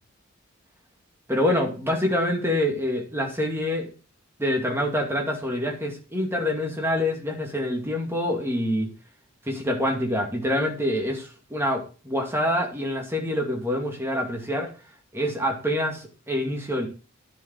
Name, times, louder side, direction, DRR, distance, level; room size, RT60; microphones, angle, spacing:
voice 1, 1.3-3.9 4.4-8.9 9.5-14.7 15.1-16.9, left 1 dB, 10° right, 2 dB, 2.3 m, -26 dB
10.0 x 5.1 x 7.5 m, 0.34 s
head